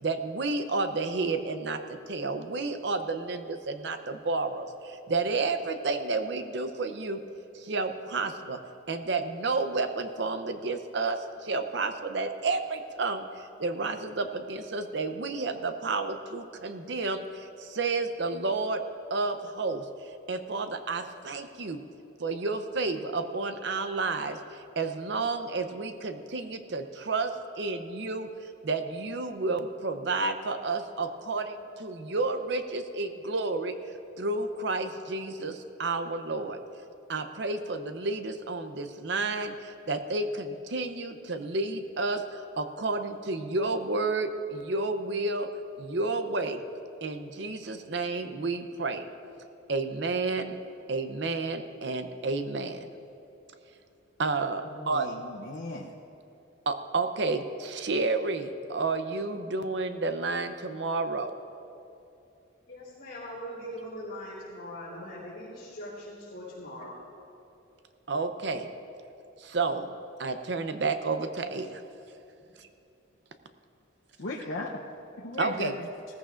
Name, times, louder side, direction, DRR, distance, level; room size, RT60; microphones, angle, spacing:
voice 1, 0.0-1.8 2.1-4.7 5.1-7.2 7.7-8.6 8.9-11.2 11.4-13.2 13.6-17.2 17.7-18.8 19.1-19.8 20.3-21.8 22.2-24.4 24.8-27.3 27.6-28.3 28.6-31.5 31.8-33.7 34.2-36.6 37.1-39.5 39.9-42.2 42.6-45.5 45.8-46.6 47.0-49.1 49.7-50.6 50.9-52.8 54.2-55.1 56.7-61.3 68.1-68.7 69.5-69.9 70.2-71.8 75.4-75.8, right 3 dB, 60° right, 8 dB, 0.7 m, -30 dB
voice 2, 54.6-55.9 74.2-74.8 75.2-75.7, left 2 dB, 70° left, -3 dB, 0.8 m, -37 dB
voice 3, 62.7-67.0 72.5-72.6, equal, 55° left, -11 dB, 3.4 m, -41 dB
18.5 x 14.5 x 2.5 m, 2.8 s
head